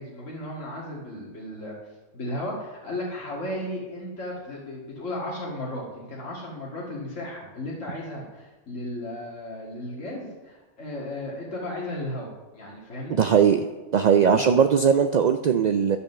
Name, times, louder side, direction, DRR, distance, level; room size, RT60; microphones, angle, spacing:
voice 1, 0.0-1.8 2.1-13.2 14.3-14.4, left 1 dB, 85° left, -5 dB, 2.3 m, -35 dB
voice 2, 13.1-13.6 13.9-16.0, right 7 dB, 65° right, 7 dB, 0.4 m, -19 dB
11.5 x 5.3 x 6.7 m, 1.1 s
omnidirectional pair, 1.3 m